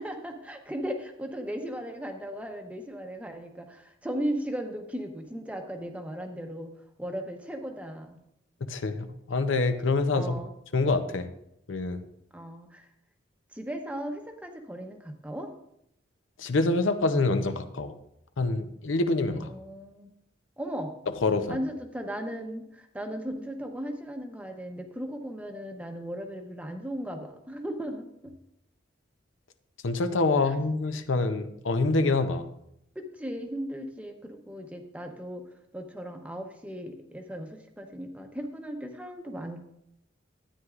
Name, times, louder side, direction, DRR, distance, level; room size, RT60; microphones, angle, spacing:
voice 1, 0.0-6.7 7.0-8.2 10.1-10.5 12.3-12.9 13.5-15.5 19.3-20.1 20.6-20.9 21.5-28.3 30.4-30.5 32.9-35.4 35.7-39.7, equal, 5° right, 4 dB, 0.7 m, -37 dB
voice 2, 8.7-10.3 10.7-11.3 11.7-12.0 16.4-17.9 18.4-19.5 21.2-21.6 29.8-32.5, left 3 dB, 80° left, 9 dB, 0.7 m, -26 dB
12.5 x 9.3 x 2.5 m, 0.77 s
head